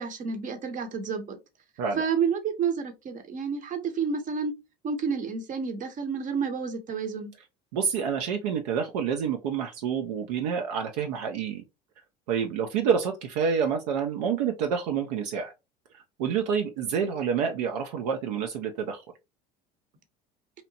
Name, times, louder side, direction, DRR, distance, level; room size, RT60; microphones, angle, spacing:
voice 1, 0.0-1.4 2.0-4.5 4.8-7.3, right 6 dB, 40° right, 0.8 m, -30 dB
voice 2, 7.7-11.6 12.3-15.5 16.2-19.0, right 7 dB, 75° right, 0.5 m, -28 dB
2.8 x 2.0 x 2.7 m
hypercardioid pair, 75°, 21 cm